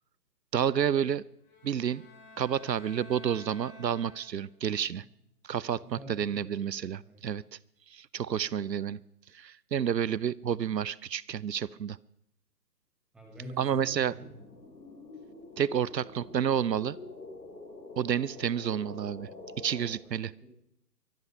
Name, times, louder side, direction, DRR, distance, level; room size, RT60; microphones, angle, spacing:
voice 1, 0.5-1.2 1.6-2.0 2.4-5.0 5.4-7.4 7.9-9.0 9.3-12.0 13.6-14.1 15.6-17.0 18.0-19.3 19.6-20.3, right 8 dB, 80° right, 23 dB, 0.6 m, -30 dB
sound 1, 1.4-4.7, left 2 dB, 25° left, 4.3 m, -52 dB
voice 2, 5.8-7.3 13.1-14.3 20.0-20.5, right 1 dB, ahead, 1 dB, 1.1 m, -46 dB
sound 2, 13.8-19.9, left 3 dB, 80° left, 4.5 m, -47 dB
23.5 x 8.9 x 5.6 m, 0.75 s
figure-of-eight pair, 145°, 50 cm